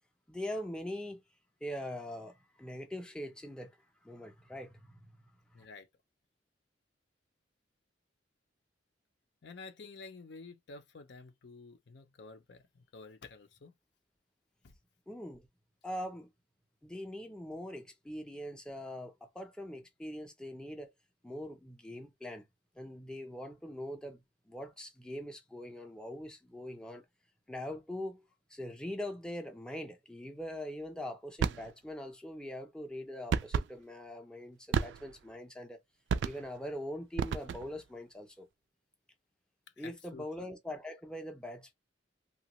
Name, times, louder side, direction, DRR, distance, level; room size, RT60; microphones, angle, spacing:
voice 1, 0.3-1.2 1.6-3.8 4.0-5.1 5.5-5.7 15.1-15.5 15.8-16.3 16.8-20.9 21.2-22.5 22.7-27.0 27.5-35.8 36.2-38.5 39.8-41.7, left 1 dB, 5° left, 0.5 m, -42 dB
voice 2, 5.5-5.9 9.4-13.7 14.6-14.7 39.8-40.5, left 4 dB, 65° left, 0.6 m, -50 dB
sound 1, 31.4-31.7 33.3-33.7 34.7-35.2 36.1-36.6 37.2-37.8, right 6 dB, 70° right, 0.3 m, -32 dB
2.9 x 2.2 x 2.9 m
head